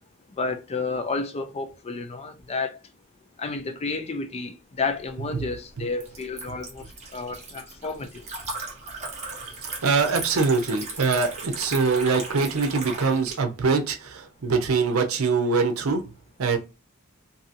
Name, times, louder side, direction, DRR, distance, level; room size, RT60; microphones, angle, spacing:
voice 1, 0.3-2.8 3.4-8.3, left 4 dB, 30° left, 0.4 m, -31 dB
Liquid, 5.0-13.3, right 3 dB, 35° right, 1.0 m, -38 dB
voice 2, 9.6-16.0 16.4-16.6, right 4 dB, 75° right, 0.6 m, -23 dB
2.7 x 2.6 x 2.5 m
head